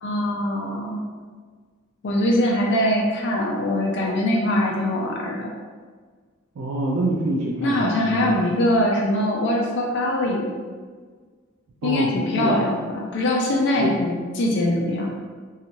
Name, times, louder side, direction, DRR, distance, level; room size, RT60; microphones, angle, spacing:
voice 1, 0.0-1.0 2.0-5.5 7.6-10.5 11.8-15.1, left 1 dB, 60° left, -1 dB, 0.4 m, -22 dB
voice 2, 6.6-8.4 11.8-12.1 12.4-12.6 13.8-13.9, right 1 dB, 90° right, -3 dB, 0.4 m, -25 dB
2.9 x 2.3 x 2.6 m, 1.5 s
head